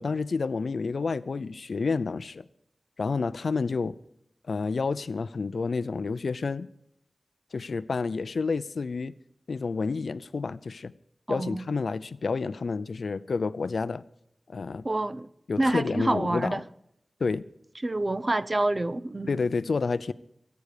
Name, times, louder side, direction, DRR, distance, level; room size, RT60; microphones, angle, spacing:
voice 1, 0.0-2.4 3.0-4.0 4.5-6.7 7.5-9.1 9.5-10.9 11.3-14.0 14.5-14.8 15.5-16.6 17.2-17.4 19.3-20.1, left 4 dB, 85° left, 0.5 m, -29 dB
voice 2, 11.3-11.7 14.8-15.3 15.6-16.6 17.8-19.4, right 2 dB, 35° right, 0.6 m, -27 dB
22.5 x 9.5 x 5.0 m
wide cardioid pair, 65°, 0 cm